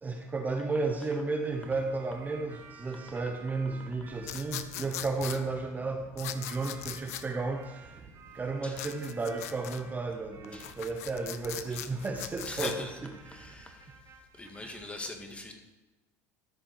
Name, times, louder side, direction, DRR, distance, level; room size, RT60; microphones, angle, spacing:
voice 1, 0.0-8.0 8.3-13.1 14.6-14.8, right 3 dB, 20° right, 3 dB, 1.0 m, -33 dB
sound 1, 1.5-14.9, right 5 dB, 40° right, 1.3 m, -52 dB
sound 2, 4.2-5.4 6.2-7.2 8.7-9.8 10.4-12.7, left 12 dB, 85° left, 0.6 m, -40 dB
voice 2, 12.4-13.9 14.4-15.5, left 2 dB, 15° left, 4 dB, 1.8 m, -41 dB
13.0 x 5.2 x 5.2 m, 1.1 s
supercardioid pair, 90°, 8 cm